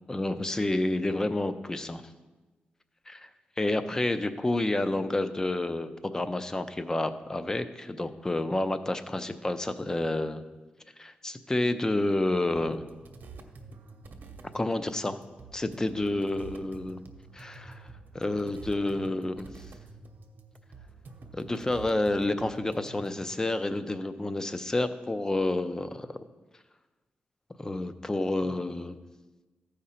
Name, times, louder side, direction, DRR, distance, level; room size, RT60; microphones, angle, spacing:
voice 1, 0.1-2.0 3.1-3.3 3.6-10.4 11.0-12.9 14.5-15.2 15.5-17.0 17.3-17.9 18.1-19.7 21.3-26.2 27.6-29.0, left 2 dB, 20° left, 11 dB, 0.5 m, -29 dB
sound 1, 12.6-23.2, right 3 dB, 70° right, 0.9 m, -48 dB
14.5 x 5.0 x 4.3 m, 1.2 s
wide cardioid pair, 120°, 3 cm